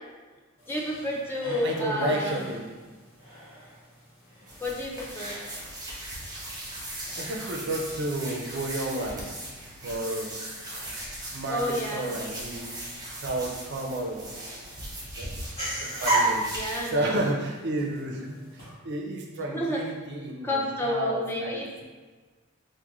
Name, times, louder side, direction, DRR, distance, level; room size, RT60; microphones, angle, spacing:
sound 1, 0.6-18.7, right 2 dB, 35° left, 1.5 m, -37 dB
voice 1, 0.7-2.4 4.6-5.4 11.5-12.0 16.5-17.2 19.5-19.8 20.4-21.7, left 1 dB, 10° left, -2 dB, 0.3 m, -30 dB
voice 2, 1.5-2.6 7.2-9.2 9.8-10.3 11.3-12.8 13.1-14.5 15.2-15.4 15.8-21.8, right 1 dB, 55° right, 1 dB, 0.4 m, -32 dB
sound 2, 4.5-16.9, right 1 dB, 20° right, 0.7 m, -39 dB
3.6 x 2.1 x 2.9 m, 1.3 s
head